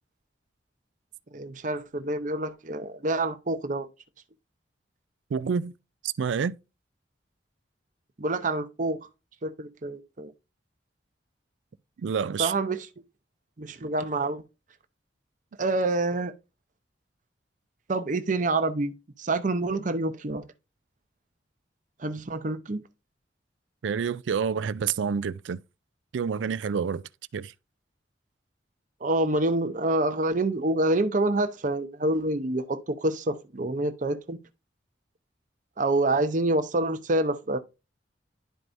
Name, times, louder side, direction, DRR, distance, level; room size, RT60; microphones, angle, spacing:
voice 1, 1.3-3.9 8.2-9.0 9.4-10.3 12.4-12.9 13.6-14.4 15.6-16.3 17.9-18.9 19.2-20.4 22.0-22.8 29.0-34.4 35.8-37.6, right 2 dB, 45° right, 0.7 m, -27 dB
voice 2, 5.3-5.7 6.0-6.6 12.0-12.5 23.8-25.6 26.1-27.0 27.3-27.5, right 6 dB, 85° right, 0.4 m, -28 dB
11.5 x 4.6 x 2.6 m
head